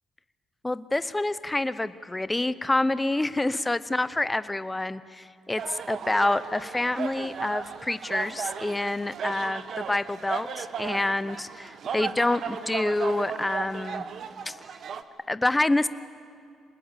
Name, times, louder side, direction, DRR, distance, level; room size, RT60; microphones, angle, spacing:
voice 1, 0.6-14.0 14.5-14.6 15.3-15.9, left 2 dB, 15° left, 15 dB, 0.8 m, -27 dB
sound 1, 5.6-15.0, right 7 dB, 60° right, 1.1 m, -36 dB
26.0 x 20.0 x 8.3 m, 2.3 s
cardioid pair, 90°, 0 cm